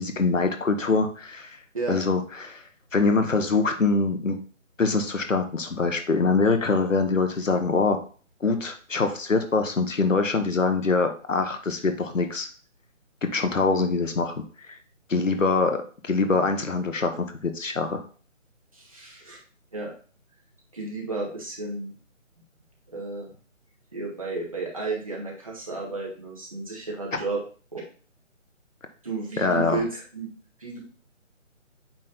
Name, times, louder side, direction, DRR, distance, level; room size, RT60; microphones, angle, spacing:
voice 1, 0.0-1.6 1.9-4.4 4.8-8.0 8.4-12.5 13.2-14.8 15.1-18.0 29.4-29.8, left 4 dB, 75° left, 7 dB, 1.4 m, -24 dB
voice 2, 18.7-19.4 19.7-19.9 20.7-21.9 22.9-23.3 23.9-27.4 27.7-27.8 29.0-30.3 30.6-30.8, right 3 dB, 25° right, -3 dB, 1.5 m, -32 dB
8.5 x 3.2 x 4.1 m, 0.41 s
figure-of-eight pair, 180°, 39 cm